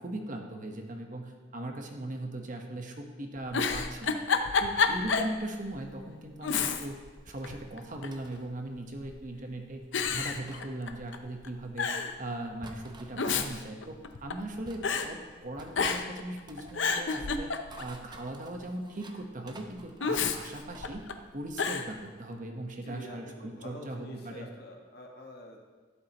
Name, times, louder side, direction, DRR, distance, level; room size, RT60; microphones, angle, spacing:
voice 1, 0.0-4.2 4.6-7.0 7.3-9.8 10.1-11.9 12.2-17.5 17.8-21.0 21.3-24.5, right 1 dB, 45° right, 3 dB, 1.1 m, -39 dB
Giggle, 3.4-5.4 5.7-5.8 6.4-7.1 7.4-8.2 9.0-9.4 9.9-11.2 11.4-11.5 11.8-12.2 13.0-14.5 14.8-15.1 15.7-16.2 16.6-18.0 20.0-21.1 21.6-21.9, left 5 dB, 80° left, 0.7 m, -30 dB
sound 1, 7.3-7.6 8.1-8.5 10.1-10.7 12.6-13.1 14.0-14.1 14.6-15.2 15.6-16.1 16.4-16.8 17.5-19.2 19.5-20.9, right 2 dB, 25° right, 0.8 m, -49 dB
voice 2, 22.8-25.6, left 1 dB, 55° left, 1 dB, 1.6 m, -47 dB
12.5 x 11.5 x 3.0 m, 1.4 s
head